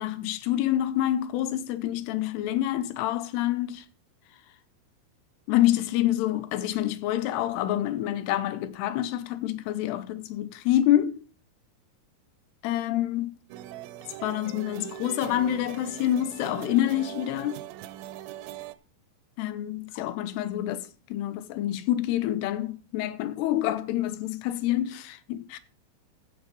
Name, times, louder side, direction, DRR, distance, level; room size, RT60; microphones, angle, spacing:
voice 1, 0.0-3.9 5.5-11.2 12.6-13.3 14.2-17.6 19.4-25.6, left 13 dB, 85° left, 3.0 m, -27 dB
sound 1, 13.5-18.8, right 13 dB, 80° right, 2.3 m, -41 dB
14.5 x 6.1 x 5.3 m
omnidirectional pair, 4.7 m